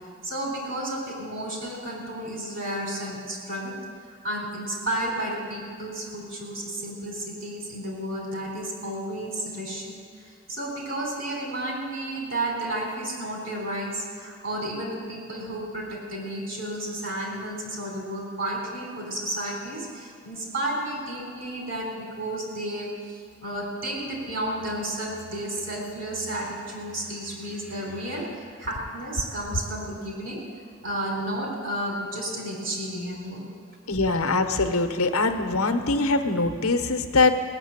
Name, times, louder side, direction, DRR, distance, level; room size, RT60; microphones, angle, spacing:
voice 1, 0.2-3.8 4.2-30.4 30.8-33.5, right 1 dB, 60° right, -1 dB, 3.8 m, -32 dB
voice 2, 33.9-37.3, left 3 dB, 85° left, 6 dB, 0.9 m, -23 dB
17.5 x 6.8 x 8.9 m, 2.3 s
head